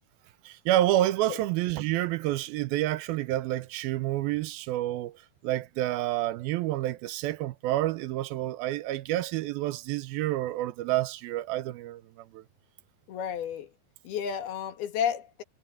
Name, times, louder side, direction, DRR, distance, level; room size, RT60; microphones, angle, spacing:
voice 1, 0.5-5.1 5.4-12.4, right 15 dB, 85° right, 2.5 m, -29 dB
voice 2, 13.1-13.7 14.1-15.4, left 8 dB, 80° left, 3.9 m, -31 dB
omnidirectional pair, 4.4 m